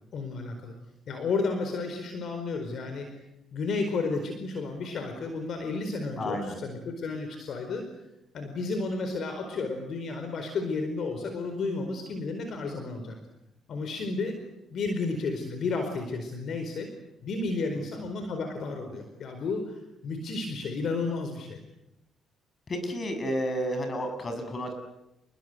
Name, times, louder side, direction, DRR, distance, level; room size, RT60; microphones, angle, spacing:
voice 1, 0.1-0.7 1.1-3.1 3.5-7.9 8.3-13.2 13.7-14.4 14.7-16.9 17.2-21.6, left 3 dB, 65° left, 6 dB, 4.7 m, -32 dB
voice 2, 6.2-6.6 22.7-24.7, equal, 35° left, 6 dB, 7.5 m, -31 dB
29.5 x 21.5 x 8.2 m, 0.88 s
cardioid pair, 90°, 0 cm